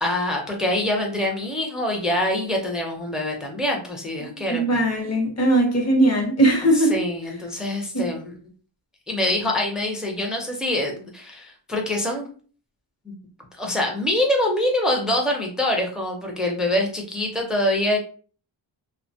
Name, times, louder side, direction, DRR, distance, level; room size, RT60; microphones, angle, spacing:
voice 1, 0.0-4.8 6.7-8.3 9.1-12.3 13.1-13.2 13.6-18.0, left 1 dB, ahead, 0.4 m, -25 dB
voice 2, 4.2-7.0 7.9-8.1, right 1 dB, 35° left, 0.6 m, -20 dB
3.1 x 2.1 x 2.6 m
wide cardioid pair, 170°, 46 cm